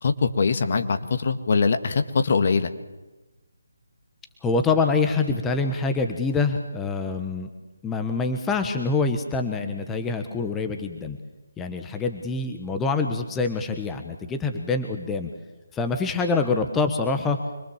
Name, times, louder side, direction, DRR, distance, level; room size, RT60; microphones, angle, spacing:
voice 1, 0.0-2.7, left 4 dB, 45° left, 8 dB, 1.8 m, -22 dB
voice 2, 4.4-7.5 7.8-11.2 11.6-15.3 15.7-17.4, left 4 dB, 10° left, 5 dB, 1.3 m, -25 dB
26.0 x 22.5 x 7.4 m, 1.1 s
figure-of-eight pair, 150°, 0 cm